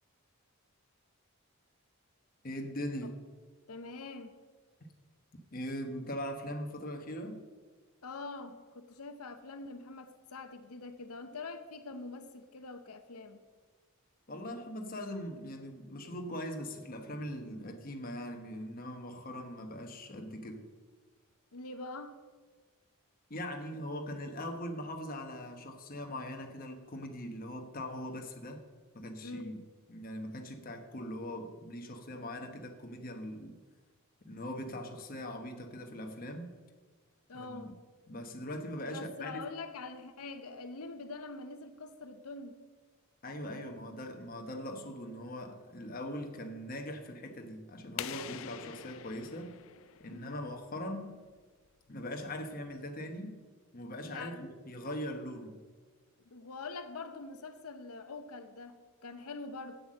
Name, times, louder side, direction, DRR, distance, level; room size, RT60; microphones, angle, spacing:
voice 1, 2.4-3.1 5.5-7.4 14.3-20.7 23.3-28.6 28.9-29.6 29.9-33.6 34.2-36.5 37.3-37.7 38.1-39.4 43.2-49.6 50.0-51.2 51.9-53.4 53.7-55.6, left 1 dB, 40° left, 1.1 m, -41 dB
voice 2, 3.7-4.3 8.0-13.4 21.5-22.2 29.2-29.6 37.3-37.8 38.9-42.6 50.1-50.3 54.0-54.4 56.2-58.8 59.0-59.8, left 3 dB, 85° left, 0.8 m, -44 dB
sound 1, 48.0-50.6, left 10 dB, 65° left, 0.4 m, -44 dB
8.1 x 7.9 x 7.5 m
head